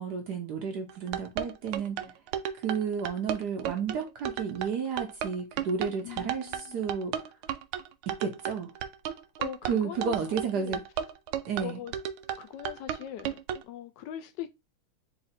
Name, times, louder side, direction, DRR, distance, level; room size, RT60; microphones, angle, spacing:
voice 1, 0.0-2.1 2.6-7.2 8.1-8.7 9.7-10.8 11.5-11.8, right 6 dB, 65° right, 1.1 m, -32 dB
sound 1, 0.9-13.6, right 9 dB, 90° right, 1.5 m, -33 dB
voice 2, 6.0-6.8 9.4-10.2 10.5-10.8 11.6-11.9 12.4-13.4 13.6-14.5, left 11 dB, 75° left, 1.0 m, -40 dB
4.1 x 2.8 x 4.1 m
omnidirectional pair, 2.3 m